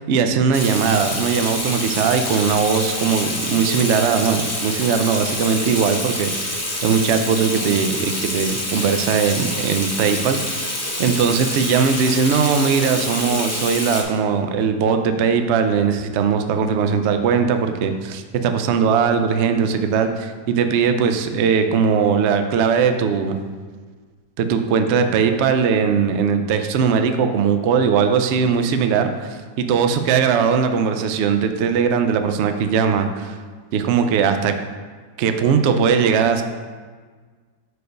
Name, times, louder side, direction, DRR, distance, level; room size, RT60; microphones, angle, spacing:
voice 1, 0.0-23.4 24.4-33.4 33.7-34.6 35.2-36.4, right 6 dB, 85° right, 7 dB, 0.6 m, -19 dB
Water tap faucet / Sink (filling or washing), 0.5-14.0, left 1 dB, 15° left, 0.7 m, -27 dB
6.5 x 4.6 x 5.1 m, 1.5 s
omnidirectional pair, 1.8 m